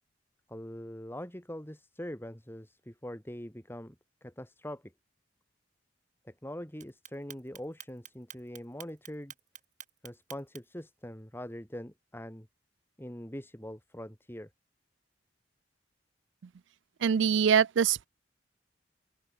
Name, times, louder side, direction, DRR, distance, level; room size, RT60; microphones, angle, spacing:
voice 1, 0.5-4.0 4.2-4.9 6.2-9.3 10.0-12.5 13.0-14.5, equal, 15° left, 4.4 m, -43 dB
Clock, 6.8-10.8, right 10 dB, 45° right, 5.5 m, -48 dB
voice 2, 17.0-18.1, right 7 dB, 85° right, 0.4 m, -24 dB
open air
head